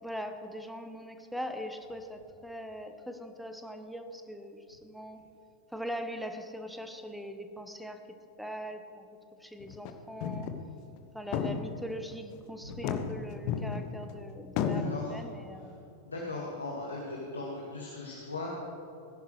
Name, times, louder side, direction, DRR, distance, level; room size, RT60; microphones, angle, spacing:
voice 1, 0.0-5.2 5.7-8.0 8.4-9.1 9.4-10.5 11.1-15.8, equal, ahead, 6 dB, 1.0 m, -41 dB
sound 1, 9.6-9.9 10.2-10.7 11.0-11.1 11.3-12.1 12.7-14.1 14.6-15.0, left 7 dB, 45° left, 0.9 m, -33 dB
voice 2, 14.7-15.2 16.1-18.5, left 2 dB, 75° left, -3 dB, 1.9 m, -38 dB
19.0 x 11.0 x 3.3 m, 2.7 s
figure-of-eight pair, 90°, 0 cm